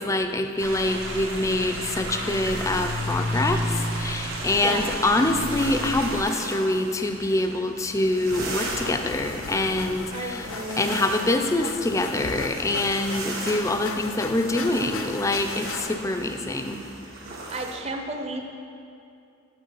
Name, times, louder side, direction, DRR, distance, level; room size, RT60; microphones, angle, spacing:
voice 1, 0.0-10.5 10.8-16.8, left 2 dB, 15° left, 6 dB, 0.3 m, -25 dB
sound 1, 0.6-6.2, equal, 85° right, 1.3 m, -30 dB
sound 2, 1.3-17.7, right 2 dB, 50° right, 1.1 m, -39 dB
sound 3, 8.3-15.9, left 4 dB, 85° left, 0.5 m, -36 dB
voice 2, 10.1-11.2 17.5-18.4, right 2 dB, 30° right, 3 dB, 0.6 m, -32 dB
6.3 x 6.1 x 5.4 m, 2.6 s
head